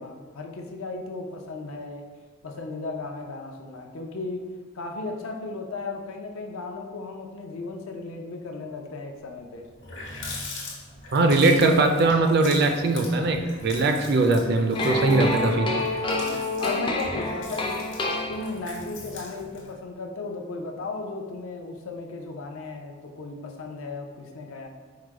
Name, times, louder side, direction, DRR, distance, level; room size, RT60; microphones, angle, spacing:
voice 1, 0.0-2.1 2.4-4.5 4.7-9.6 16.1-17.8 18.3-24.7, left 3 dB, 75° left, 2 dB, 0.6 m, -35 dB
Water tap faucet, 9.3-9.4 9.6-19.7, left 2 dB, 55° left, 1.2 m, -41 dB
voice 2, 11.1-15.7, right 2 dB, 50° right, 5 dB, 0.4 m, -21 dB
sound 1, 14.7-18.8, left 2 dB, 25° left, 0.4 m, -28 dB
4.8 x 2.2 x 4.7 m, 1.4 s
head